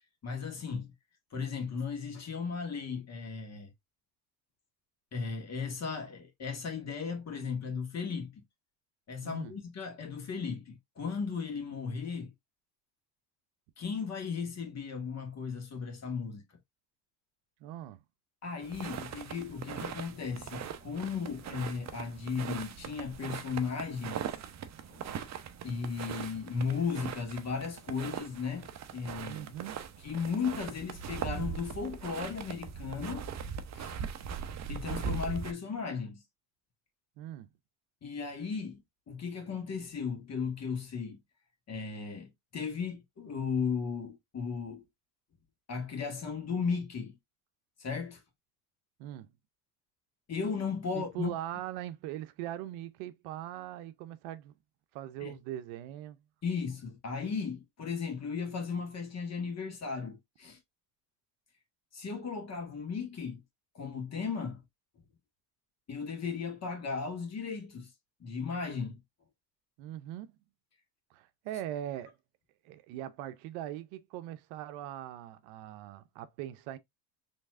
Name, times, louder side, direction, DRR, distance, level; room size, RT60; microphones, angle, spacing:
voice 1, 0.2-0.9 1.3-3.7 5.1-8.4 9.1-12.3 13.8-16.4 18.4-24.2 24.9-25.1 25.6-29.5 30.0-33.3 33.7-34.0 34.7-36.2 38.0-41.2 41.7-44.8 45.7-47.2 47.8-48.2 50.3-51.3 55.2-55.3 56.4-60.6 61.9-63.4 63.8-64.6 65.9-67.9 68.2-69.0, left 5 dB, 30° left, 1.8 m, -36 dB
voice 2, 9.2-9.5 17.6-18.0 29.2-29.9 37.2-37.5 49.0-49.3 50.9-54.5 54.9-56.2 69.8-70.4 71.1-72.2 72.6-76.8, right 12 dB, 70° right, 0.8 m, -41 dB
sound 1, 18.6-35.5, right 7 dB, 35° right, 0.7 m, -40 dB
4.5 x 3.4 x 2.5 m
supercardioid pair, 95°, 50 cm